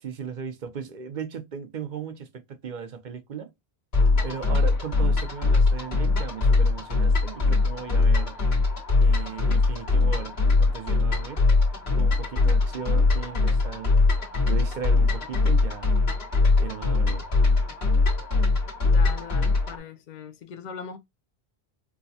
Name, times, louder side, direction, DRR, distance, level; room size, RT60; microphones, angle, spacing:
voice 1, 0.0-3.5 4.2-8.4 9.0-11.4 11.9-14.0 14.5-15.9 16.6-17.3, right 7 dB, 55° right, 0.7 m, -37 dB
sound 1, 3.9-19.8, left 3 dB, 80° left, 1.6 m, -22 dB
voice 2, 18.8-21.0, left 7 dB, 55° left, 0.6 m, -40 dB
4.6 x 2.1 x 2.7 m
omnidirectional pair, 1.0 m